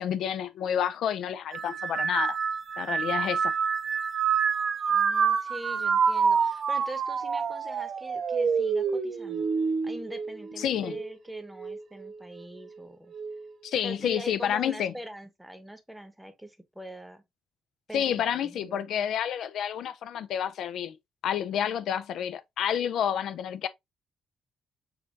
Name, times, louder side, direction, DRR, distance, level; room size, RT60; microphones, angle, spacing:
voice 1, 0.0-2.4 2.8-3.5 10.6-11.0 13.6-14.9 17.9-21.0 21.2-23.7, left 9 dB, 75° left, 0.3 m, -29 dB
sound 1, 1.5-11.1 11.6-12.2 13.1-13.5, right 6 dB, 50° right, 0.5 m, -27 dB
voice 2, 4.9-9.5 9.8-13.1 13.8-17.2 17.9-18.8, equal, 5° right, 0.8 m, -43 dB
6.3 x 2.6 x 2.4 m
cardioid pair, 90°, 0 cm